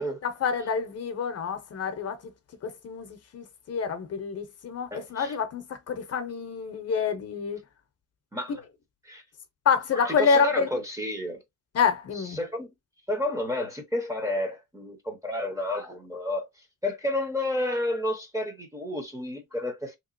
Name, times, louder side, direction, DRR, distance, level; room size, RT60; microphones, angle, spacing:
voice 1, 0.0-2.3 2.6-7.6 9.7-10.7 11.7-12.4, left 6 dB, 50° left, 0.6 m, -27 dB
voice 2, 4.9-5.4 8.3-8.6 9.0-9.2 9.9-11.4 12.1-12.7 13.1-16.5 16.8-20.0, left 1 dB, 10° right, 0.7 m, -31 dB
3.4 x 2.9 x 2.5 m
wide cardioid pair, 170°, 31 cm